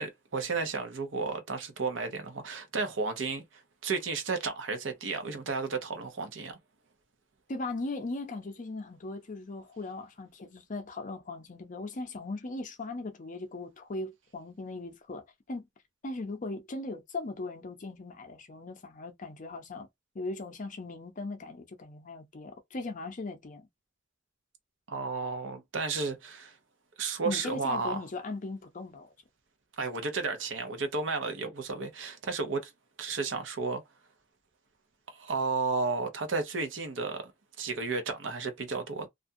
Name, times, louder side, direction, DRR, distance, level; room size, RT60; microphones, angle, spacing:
voice 1, 0.0-3.4 3.8-6.6 24.9-26.6 27.0-28.0 29.8-32.7 33.0-33.8 35.1-37.3 37.6-39.1, right 4 dB, 75° right, 0.7 m, -33 dB
voice 2, 7.5-15.7 16.0-19.9 20.1-23.7 27.2-29.1, left 2 dB, 45° left, 0.6 m, -38 dB
2.5 x 2.2 x 2.6 m
head